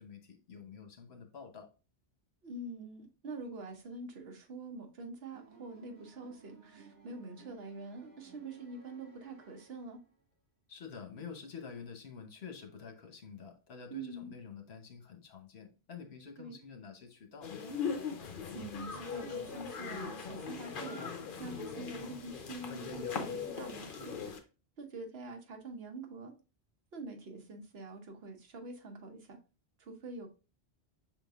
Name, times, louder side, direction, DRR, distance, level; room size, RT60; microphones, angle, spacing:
voice 1, 0.0-1.7 10.7-17.6, left 6 dB, 75° left, 4 dB, 1.2 m, -48 dB
voice 2, 2.4-10.0 13.9-14.3 16.4-16.6 18.5-21.1 21.4-24.4 24.8-26.3 26.9-29.4 29.8-30.3, right 2 dB, 70° right, 4 dB, 1.1 m, -45 dB
sound 1, 5.3-10.2, right 6 dB, 40° right, 2.5 m, -58 dB
sound 2, 17.4-24.4, left 6 dB, 55° left, 0.8 m, -40 dB
5.8 x 3.7 x 2.4 m, 0.33 s
omnidirectional pair, 1.1 m